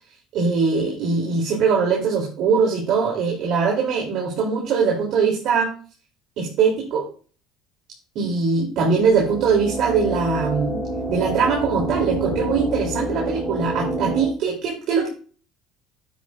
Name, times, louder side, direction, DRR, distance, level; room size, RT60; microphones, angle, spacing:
voice 1, 0.3-5.7 6.4-7.1 8.1-10.8 11.1-15.1, right 5 dB, 60° right, -2 dB, 2.9 m, -21 dB
sound 1, 8.8-14.3, right 1 dB, ahead, 3.3 m, -28 dB
9.9 x 8.6 x 2.4 m, 0.39 s
cardioid pair, 135°, 0 cm